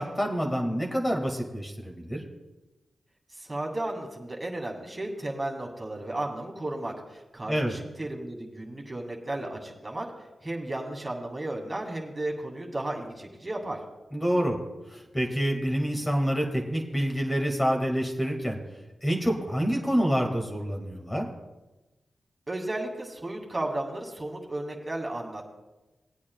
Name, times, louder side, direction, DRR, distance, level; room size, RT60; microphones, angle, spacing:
voice 1, 0.0-2.2 7.5-7.7 14.1-14.6 14.9-18.6 19.0-21.3, equal, 20° left, 1 dB, 2.0 m, -27 dB
voice 2, 3.3-10.1 10.4-13.8 22.5-25.5, right 1 dB, 30° right, 0 dB, 2.2 m, -34 dB
19.0 x 8.5 x 2.3 m, 1.1 s
cardioid pair, 45°, 0 cm